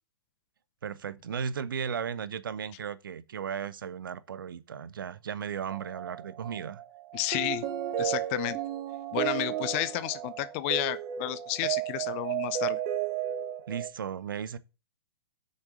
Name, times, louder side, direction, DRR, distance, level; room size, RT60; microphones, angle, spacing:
voice 1, 0.8-6.8 13.7-14.6, right 7 dB, 55° right, 1.0 m, -35 dB
sound 1, 5.7-13.9, right 11 dB, 30° right, 1.4 m, -33 dB
voice 2, 7.1-7.6 8.0-8.6 9.1-12.8, left 16 dB, 30° left, 0.7 m, -31 dB
8.2 x 6.7 x 6.6 m
figure-of-eight pair, 115°, 13 cm